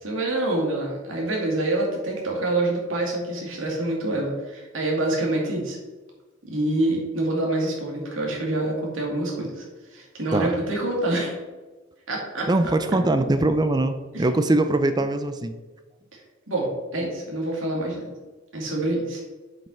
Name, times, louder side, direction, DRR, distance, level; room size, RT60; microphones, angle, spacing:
voice 1, 0.0-5.8 6.4-9.7 9.9-11.3 12.1-12.5 14.1-14.2 16.5-18.1 18.5-19.2, right 2 dB, 80° right, -1 dB, 2.5 m, -26 dB
voice 2, 12.5-15.5, right 2 dB, 20° right, 9 dB, 0.5 m, -22 dB
7.5 x 5.4 x 5.6 m, 1.2 s
head